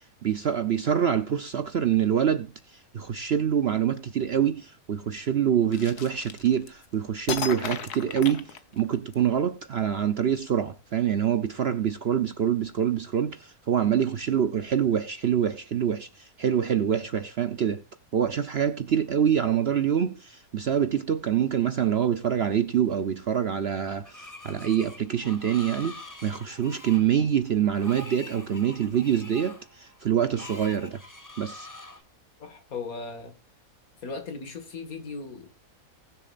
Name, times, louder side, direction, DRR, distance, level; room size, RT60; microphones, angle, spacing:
voice 1, 0.2-17.8 18.1-31.0 31.4-31.7, right 9 dB, 55° right, 0.8 m, -25 dB
sound 1, 5.7-6.9 7.3-9.1, left 8 dB, 80° left, 1.6 m, -35 dB
Screech, 24.0-32.0, left 1 dB, 10° left, 1.4 m, -45 dB
voice 2, 32.4-33.4 34.0-35.5, left 4 dB, 65° left, 2.3 m, -37 dB
19.5 x 6.9 x 2.5 m
omnidirectional pair, 1.6 m